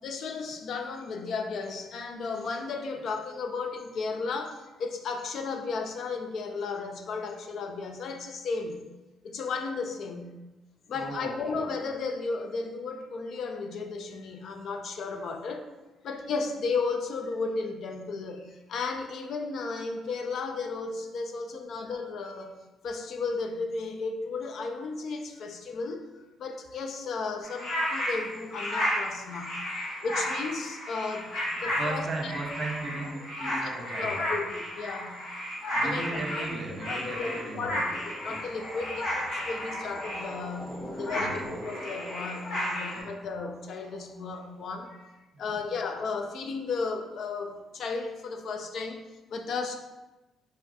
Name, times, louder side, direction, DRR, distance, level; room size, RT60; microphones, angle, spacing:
voice 1, 0.0-8.8 9.2-10.4 10.9-15.7 16.0-22.5 22.8-26.0 26.4-29.6 30.0-31.4 31.6-32.3 33.6-35.2 35.8-36.5 36.9-37.9 38.2-45.1 45.4-49.0 49.3-49.8, left 4 dB, 65° left, 5 dB, 0.3 m, -34 dB
voice 2, 11.0-11.6 31.5-34.3 35.7-37.9 41.1-41.4 42.9-43.1 45.3-45.7, right 2 dB, 45° right, 1 dB, 0.5 m, -36 dB
sound 1, 27.4-40.5 40.9-43.0, equal, 90° left, 1.1 m, -33 dB
sound 2, 36.5-44.7, equal, 5° right, 0.6 m, -43 dB
3.2 x 2.3 x 2.6 m, 1.1 s
cardioid pair, 90°, 0 cm